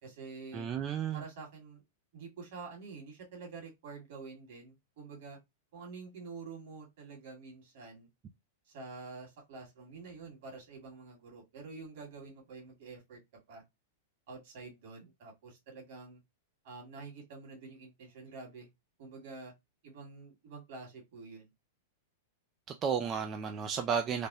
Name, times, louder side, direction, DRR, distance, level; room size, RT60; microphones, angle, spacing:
voice 1, 0.0-0.7 1.1-1.8 2.1-5.4 5.7-8.1 8.7-13.2 13.5-13.6 14.3-16.2 16.6-18.7 19.0-19.5 19.8-21.5, right 4 dB, 60° right, 1.7 m, -48 dB
voice 2, 0.5-1.2 22.7-24.3, right 7 dB, 25° right, 0.3 m, -33 dB
3.3 x 2.1 x 2.6 m
hypercardioid pair, 130°, 0 cm